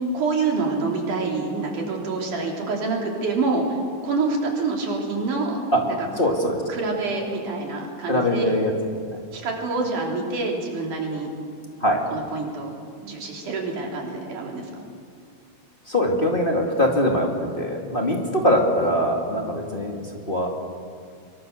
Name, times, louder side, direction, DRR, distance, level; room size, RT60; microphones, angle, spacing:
voice 1, 0.1-5.6 5.8-6.0 6.7-8.5 9.3-11.3 12.1-12.7 13.0-14.7, right 3 dB, 85° right, -1 dB, 4.9 m, -26 dB
voice 2, 6.2-6.6 8.1-8.7 9.1-9.2 11.8-12.0 15.9-20.0 20.3-20.5, left 1 dB, 20° left, 0 dB, 2.2 m, -22 dB
23.5 x 23.5 x 6.7 m, 2.2 s
omnidirectional pair, 3.5 m